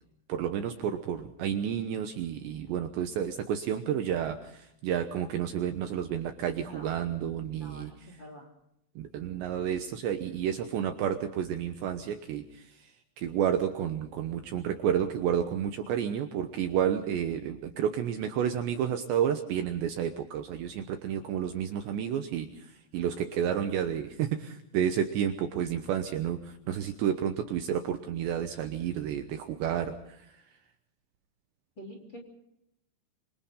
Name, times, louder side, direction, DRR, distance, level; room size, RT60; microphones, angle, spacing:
voice 1, 0.3-7.9 9.0-12.9 13.2-30.4, right 9 dB, 70° right, 6 dB, 2.9 m, -31 dB
voice 2, 7.6-8.5 31.8-32.2, equal, 25° left, 2 dB, 3.4 m, -47 dB
26.5 x 25.5 x 3.8 m, 0.78 s
omnidirectional pair, 6.0 m